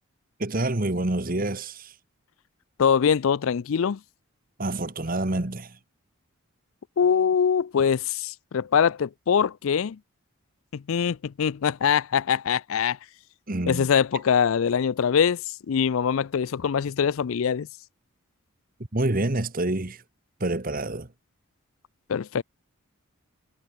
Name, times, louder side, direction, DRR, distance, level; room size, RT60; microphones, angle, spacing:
voice 1, 0.4-1.9 4.6-5.8 13.5-13.9 18.9-20.0 20.4-21.1, right 2 dB, 40° right, 1.3 m, -27 dB
voice 2, 2.8-4.0 7.0-10.0 10.7-13.0 13.7-17.7 22.1-22.4, left 7 dB, 70° left, 0.4 m, -23 dB
head